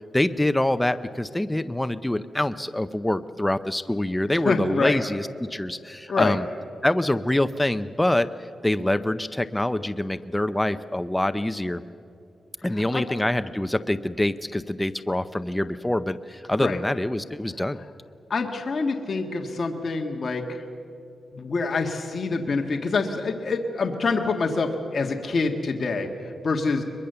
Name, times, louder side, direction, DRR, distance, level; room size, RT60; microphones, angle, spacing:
voice 1, 0.1-6.5 6.8-8.3 8.6-11.8 12.6-17.8, left 1 dB, 10° left, 12 dB, 0.5 m, -25 dB
voice 2, 4.3-5.0 6.1-6.4 12.9-13.0 16.6-16.8 18.3-20.4 21.3-26.1 26.4-26.8, left 4 dB, 50° left, 3 dB, 1.6 m, -26 dB
22.5 x 22.0 x 6.8 m, 2.7 s
wide cardioid pair, 105°, 0 cm